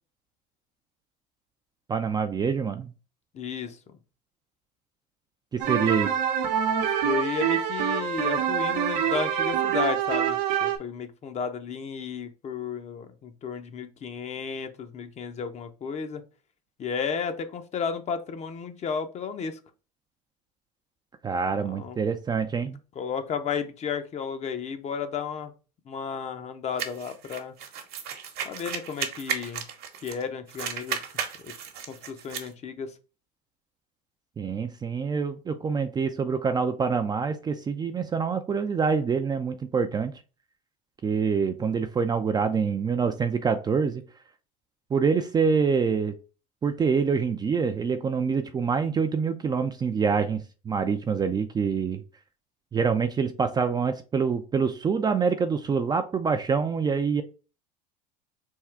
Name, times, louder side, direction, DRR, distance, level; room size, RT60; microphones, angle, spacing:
voice 1, 1.9-2.9 5.5-6.1 21.2-22.8 34.4-40.1 41.0-44.0 44.9-46.1 46.6-50.4 50.7-52.0 52.7-57.2, right 5 dB, 20° right, 7 dB, 0.4 m, -26 dB
voice 2, 3.3-3.8 7.0-16.2 16.8-19.6 21.5-22.0 22.9-25.5 25.9-27.5 28.4-29.6 30.0-31.0 31.4-31.5 31.9-32.9, left 6 dB, 35° left, 9 dB, 0.6 m, -33 dB
sound 1, 5.6-10.8, right 8 dB, 80° right, 0.8 m, -25 dB
sound 2, 26.8-30.2 30.5-32.5, right 8 dB, 50° right, 1.0 m, -34 dB
3.6 x 2.3 x 4.4 m, 0.34 s
supercardioid pair, 95°, 20 cm